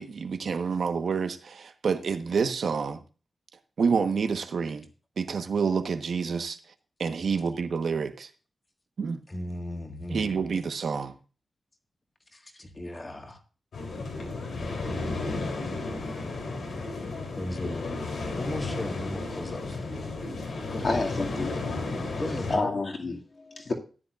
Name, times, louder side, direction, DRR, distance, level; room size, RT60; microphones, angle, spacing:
voice 1, 0.0-3.0 3.8-4.9 5.2-6.6 7.0-8.3 9.0-9.2 10.1-11.2, right 5 dB, 70° right, 1.2 m, -28 dB
voice 2, 9.3-10.4 12.3-13.4 14.8-15.7 17.4-20.3 20.7-21.0 22.2-22.7, left 1 dB, 25° left, 1.7 m, -37 dB
sound 1, 13.7-22.5, left 3 dB, 85° left, 3.4 m, -33 dB
voice 3, 20.8-21.6 22.5-23.7, left 3 dB, 50° left, 2.2 m, -29 dB
14.0 x 10.0 x 2.5 m
wide cardioid pair, 140°, 0 cm